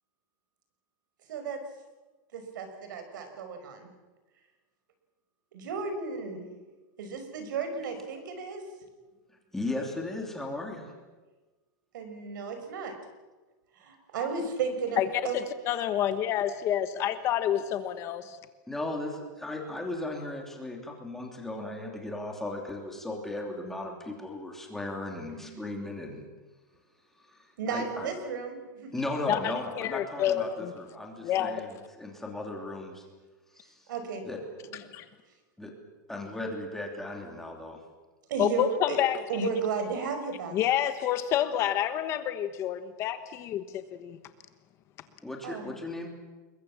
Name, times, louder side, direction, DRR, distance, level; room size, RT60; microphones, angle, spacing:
voice 1, 1.3-1.6 2.3-3.9 5.5-6.5 7.0-8.7 11.9-12.9 13.8-15.4 25.4-25.7 27.6-28.9 33.9-34.2 38.3-39.0 39.3-40.6 45.4-45.7, right 5 dB, 70° right, 7 dB, 5.8 m, -34 dB
voice 2, 9.5-10.9 18.7-26.2 27.3-28.1 28.9-33.0 33.5-33.9 34.2-34.4 35.6-35.7 36.1-37.8 45.2-46.1, left 2 dB, 5° left, 1 dB, 3.1 m, -36 dB
voice 3, 15.3-18.4 29.3-30.7 31.2-31.6 34.9-35.0 38.4-39.5 40.5-44.2, left 10 dB, 25° left, 10 dB, 1.1 m, -28 dB
28.5 x 22.0 x 7.4 m, 1.2 s
supercardioid pair, 170°, 11 cm